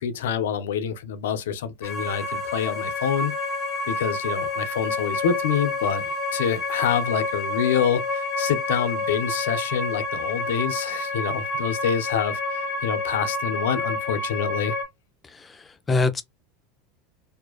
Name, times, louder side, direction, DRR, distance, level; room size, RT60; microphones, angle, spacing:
voice 1, 0.0-3.3 3.9-14.7, left 8 dB, 80° left, 0.4 m, -27 dB
sound 1, 1.8-14.8, left 2 dB, 40° left, 0.8 m, -29 dB
voice 2, 15.2-16.2, left 3 dB, 20° left, 0.4 m, -25 dB
2.4 x 2.1 x 2.3 m
hypercardioid pair, 95°, 0 cm